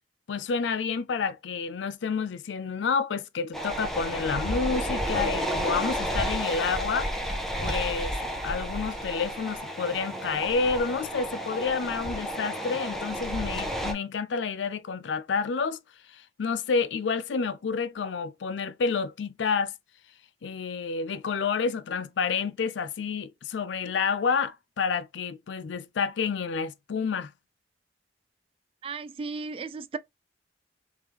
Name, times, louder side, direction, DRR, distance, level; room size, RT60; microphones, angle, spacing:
voice 1, 0.3-7.1 7.6-8.2 8.4-15.8 16.1-19.7 20.4-27.3, left 5 dB, 90° left, 0.4 m, -29 dB
sound 1, 3.5-13.9, equal, ahead, 0.7 m, -31 dB
voice 2, 28.8-30.0, right 4 dB, 30° right, 0.3 m, -35 dB
3.6 x 3.2 x 2.9 m
head